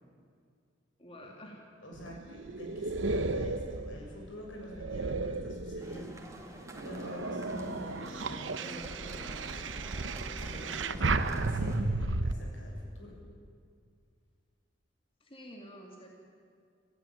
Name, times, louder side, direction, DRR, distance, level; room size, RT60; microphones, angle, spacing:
voice 1, 1.0-1.7 15.2-16.1, equal, 30° left, 0 dB, 2.7 m, -49 dB
voice 2, 1.8-9.9 10.2-13.1, left 1 dB, 90° left, -1 dB, 7.3 m, -47 dB
sound 1, 1.9-6.2 6.7-12.3, right 3 dB, 75° right, 1.0 m, -34 dB
sound 2, 5.8-11.8, right 1 dB, 15° right, 2.5 m, -47 dB
26.5 x 15.5 x 9.2 m, 2.2 s
head